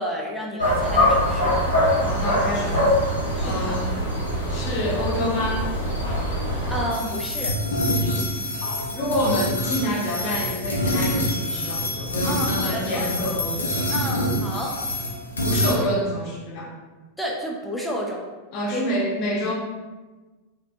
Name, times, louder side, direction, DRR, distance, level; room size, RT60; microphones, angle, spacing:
voice 1, 0.0-1.6 3.4-3.8 6.7-7.6 12.3-13.1 13.9-14.8 17.2-18.2 18.7-18.9, equal, ahead, -2 dB, 0.6 m, -31 dB
sound 1, 0.6-6.9, left 1 dB, 85° right, 0.8 m, -23 dB
voice 2, 2.0-3.0 3.4-4.0 4.5-5.6 8.6-13.9 15.4-16.7 18.5-19.5, equal, 40° left, -3 dB, 0.8 m, -27 dB
sound 2, 6.9-15.7, left 1 dB, 75° left, 0.5 m, -26 dB
3.3 x 2.6 x 2.5 m, 1.2 s
figure-of-eight pair, 90°, 0 cm